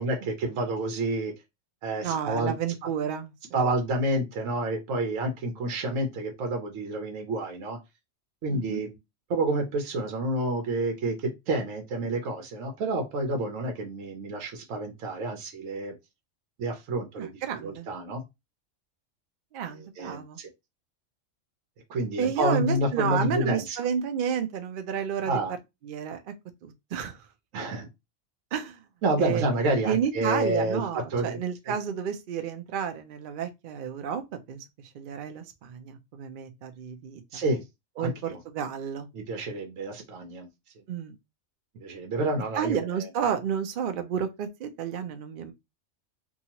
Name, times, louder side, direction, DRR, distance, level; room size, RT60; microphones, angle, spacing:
voice 1, 0.0-1.3 1.8-2.5 3.5-7.8 8.4-8.9 9.3-15.9 16.6-18.2 19.7-20.5 21.9-23.8 25.2-25.5 27.5-27.9 29.0-31.4 31.6-31.8 37.3-37.6 38.0-38.4 39.1-40.5 41.8-43.1, right 1 dB, 80° right, 1.1 m, -29 dB
voice 2, 2.0-3.3 8.5-8.8 17.2-17.9 19.5-20.4 22.2-25.4 25.8-26.3 26.6-27.2 28.5-28.8 29.2-29.4 29.9-34.2 34.5-34.6 34.9-37.4 38.0-38.1 38.5-39.1 40.9-41.1 42.6-45.5, right 8 dB, 60° right, 0.5 m, -31 dB
2.8 x 2.3 x 2.8 m
omnidirectional pair, 1.3 m